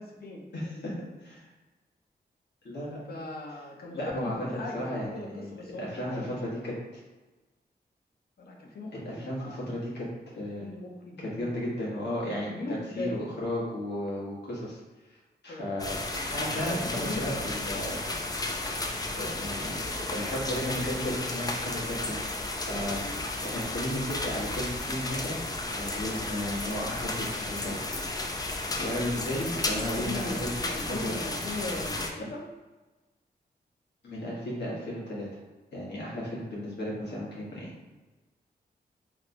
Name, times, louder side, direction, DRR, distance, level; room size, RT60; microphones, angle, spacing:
voice 1, 0.0-0.4 0.7-0.9 3.1-6.5 8.4-9.6 10.6-11.6 12.5-13.2 15.5-16.0 16.6-17.5 22.8-23.2 29.3-32.5, left 2 dB, 65° left, 0 dB, 0.7 m, -39 dB
voice 2, 0.5-1.4 2.6-3.0 3.9-6.8 8.9-10.1 10.4-10.7 11.2-14.8 15.4-16.0 16.2-18.0 19.1-19.8 20.1-22.2 22.7-25.4 25.8-28.3 28.8-30.6 30.8-31.1 34.0-35.3 35.7-37.7, left 1 dB, 85° left, -5 dB, 1.1 m, -34 dB
sound 1, 15.8-32.1, left 2 dB, 20° left, 0.4 m, -33 dB
3.1 x 2.9 x 2.5 m, 1.2 s
wide cardioid pair, 100°, 17 cm